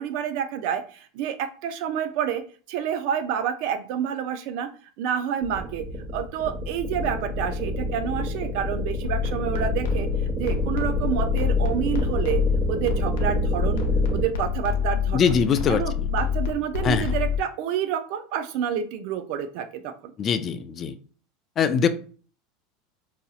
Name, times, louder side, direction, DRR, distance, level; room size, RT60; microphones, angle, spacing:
voice 1, 0.0-2.4 2.7-4.7 5.0-5.8 6.1-10.1 10.4-12.4 12.7-13.8 14.1-15.4 15.7-19.9, right 9 dB, 65° right, 10 dB, 0.5 m, -28 dB
sound 1, 5.4-14.3, equal, 30° right, 1.1 m, -27 dB
sound 2, 9.0-17.4, left 7 dB, 80° left, 0.6 m, -27 dB
voice 2, 15.1-16.1 16.8-17.1 20.2-20.9 21.6-21.9, left 6 dB, 35° left, 10 dB, 0.4 m, -22 dB
4.1 x 2.6 x 2.4 m, 0.40 s
supercardioid pair, 115°, 0 cm